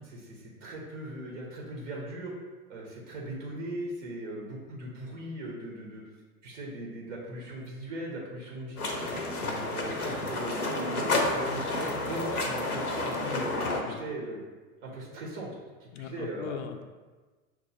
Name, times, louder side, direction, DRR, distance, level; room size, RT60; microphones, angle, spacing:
voice 1, 0.0-2.3 2.7-6.0 6.4-9.2 9.6-13.5 13.8-14.4 14.8-15.5 15.8-16.6, right 1 dB, 55° right, -3 dB, 1.1 m, -39 dB
sound 1, 8.8-13.8, left 2 dB, 90° left, 0.7 m, -30 dB
voice 2, 9.4-9.7 13.2-14.0 15.9-16.8, left 8 dB, 50° left, 7 dB, 0.5 m, -40 dB
5.9 x 2.6 x 2.7 m, 1.3 s
figure-of-eight pair, 90°, 44 cm